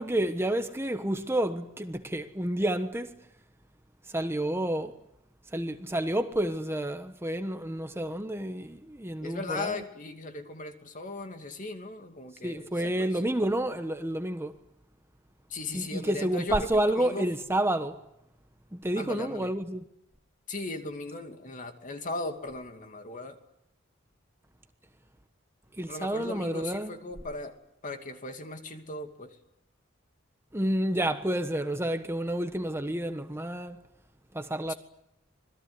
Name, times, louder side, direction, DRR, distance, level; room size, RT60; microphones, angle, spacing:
voice 1, 0.0-3.1 4.1-5.0 5.5-9.8 12.4-14.5 15.7-18.0 18.7-19.9 25.8-26.9 30.5-33.8 34.3-34.7, right 1 dB, 10° right, 1.2 m, -29 dB
voice 2, 9.2-13.2 15.5-17.3 19.0-19.5 20.5-23.4 25.9-27.6 27.8-29.4 34.7-34.8, left 2 dB, 40° left, 2.7 m, -38 dB
26.5 x 21.0 x 9.7 m
head